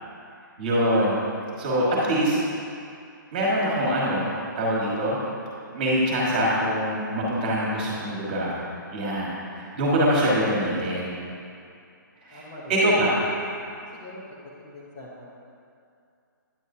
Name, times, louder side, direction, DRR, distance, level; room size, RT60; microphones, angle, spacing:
voice 1, 0.6-1.1 1.6-2.4 3.3-5.2 5.7-8.5 8.9-11.1 12.3-13.1, equal, 25° right, -6 dB, 1.5 m, -24 dB
voice 2, 12.3-12.7 14.0-14.2 14.6-15.3, left 1 dB, 15° left, -7 dB, 0.5 m, -43 dB
9.6 x 8.6 x 2.7 m, 2.5 s
hypercardioid pair, 180°, 11 cm